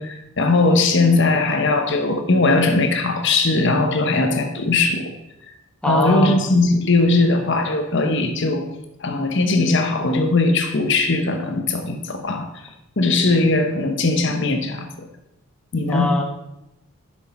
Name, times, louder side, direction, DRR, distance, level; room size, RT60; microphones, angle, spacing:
voice 1, 0.0-5.1 5.8-8.7 9.0-12.5 13.0-15.1 15.7-16.1, left 3 dB, 55° left, 6 dB, 1.0 m, -19 dB
voice 2, 5.8-6.5 15.9-16.2, left 1 dB, 5° left, 0 dB, 1.0 m, -22 dB
12.0 x 6.3 x 4.3 m, 0.89 s
head